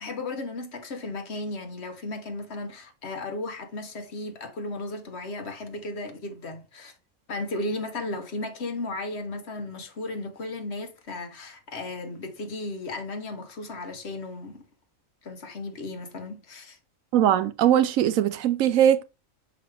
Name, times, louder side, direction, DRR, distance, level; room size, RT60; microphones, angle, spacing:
voice 1, 0.0-6.9 7.3-14.6 15.2-16.8, left 2 dB, 55° left, 1.2 m, -35 dB
voice 2, 17.1-19.0, right 10 dB, 80° right, 1.0 m, -20 dB
6.2 x 4.9 x 3.3 m
omnidirectional pair, 1.4 m